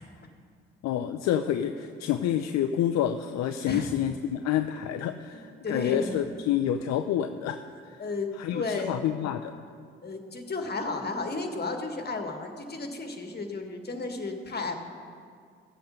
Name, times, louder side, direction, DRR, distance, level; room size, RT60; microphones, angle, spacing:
voice 1, 0.8-8.0 8.4-9.5, left 10 dB, 60° left, 7 dB, 0.6 m, -28 dB
voice 2, 5.3-6.2 8.0-9.2 10.0-14.8, left 3 dB, 35° left, 5 dB, 1.8 m, -33 dB
15.5 x 7.9 x 5.2 m, 2.2 s
hypercardioid pair, 45°, 30 cm